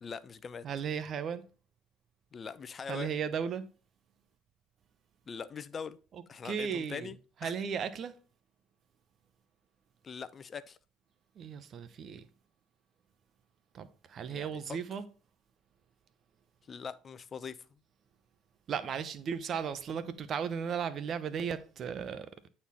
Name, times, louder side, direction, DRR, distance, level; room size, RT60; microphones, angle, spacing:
voice 1, 0.0-0.6 2.3-3.1 5.3-6.0 6.3-7.2 7.4-7.5 10.0-10.8 14.3-14.8 16.7-17.6, left 6 dB, 40° left, 0.6 m, -42 dB
voice 2, 0.6-1.4 2.9-3.7 6.1-7.1 7.4-8.2 11.4-12.3 13.7-15.0 18.7-22.3, right 7 dB, 50° right, 0.9 m, -36 dB
9.0 x 4.4 x 4.2 m
supercardioid pair, 75°, 0 cm